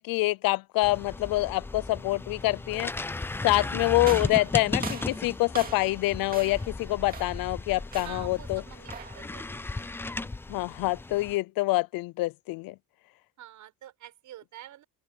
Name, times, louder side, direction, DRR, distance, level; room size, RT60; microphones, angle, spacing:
voice 1, 0.0-2.9 3.4-8.6 10.5-12.7, left 20 dB, 80° left, 0.6 m, -26 dB
sound 1, 0.8-11.4, left 3 dB, 5° left, 0.3 m, -36 dB
voice 2, 3.5-4.5 8.0-10.3 13.4-14.8, right 11 dB, 55° right, 6.9 m, -48 dB
sound 2, 4.0-6.0 6.3-6.7 7.1-7.5 7.9-8.3 8.9-9.3, right 6 dB, 25° right, 2.2 m, -41 dB
open air
cardioid pair, 175°, 35 cm